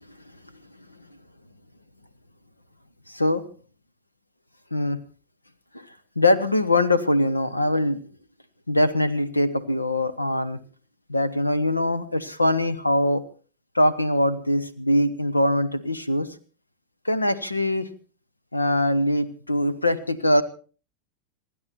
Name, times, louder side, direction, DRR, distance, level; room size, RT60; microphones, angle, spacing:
voice 1, 3.1-3.4 4.7-5.0 5.7-5.9 6.2-8.0 8.7-10.6 11.1-13.2 13.7-16.3 17.0-17.9 18.5-20.4, left 1 dB, 85° left, 17 dB, 1.2 m, -22 dB
27.0 x 11.0 x 4.3 m, 0.38 s
figure-of-eight pair, 90°, 0 cm